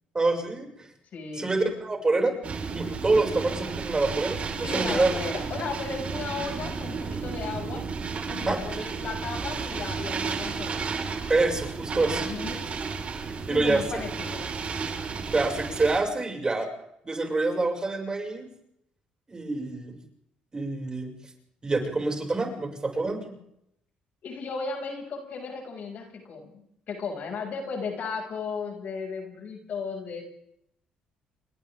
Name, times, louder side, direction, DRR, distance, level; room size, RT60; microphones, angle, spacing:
voice 1, 0.1-0.7 1.4-2.3 2.7-5.2 8.5-8.9 11.3-12.3 13.5-13.8 15.3-16.7 17.0-18.4 19.3-19.9 20.5-21.1 21.6-23.2, right 3 dB, 25° right, 2 dB, 6.5 m, -26 dB
voice 2, 1.1-1.5 4.6-7.8 8.2-10.9 12.1-12.7 13.5-14.5 24.2-30.2, left 4 dB, 60° left, 1 dB, 6.8 m, -35 dB
sound 1, 2.4-16.0, right 5 dB, 45° right, 5.0 m, -33 dB
29.0 x 24.0 x 3.8 m, 0.75 s
supercardioid pair, 70°, 3 cm